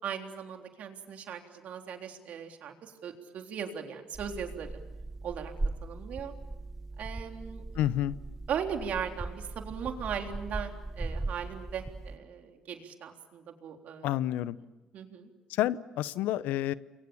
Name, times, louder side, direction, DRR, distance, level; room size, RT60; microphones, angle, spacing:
voice 1, 0.0-4.7 5.2-5.5 5.8-6.3 7.0-7.6 8.5-10.7 11.0-14.2 14.9-15.3, right 7 dB, 60° right, 4 dB, 3.6 m, -38 dB
sound 1, 4.1-12.2, right 2 dB, 15° right, 1.1 m, -39 dB
voice 2, 7.7-8.2 14.0-14.6 15.5-16.7, left 13 dB, 75° left, 17 dB, 0.8 m, -29 dB
29.5 x 23.0 x 7.2 m, 1.1 s
supercardioid pair, 70°, 3 cm